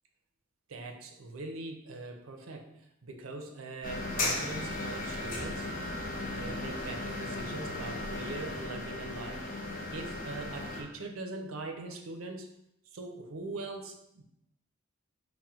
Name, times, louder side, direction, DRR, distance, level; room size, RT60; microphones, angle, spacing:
voice 1, 0.7-5.7 6.3-12.5 12.9-14.2, right 2 dB, 90° right, 4 dB, 0.5 m, -42 dB
sound 1, 3.8-10.8, left 2 dB, 40° left, 0.6 m, -36 dB
3.5 x 2.1 x 4.3 m, 0.80 s
head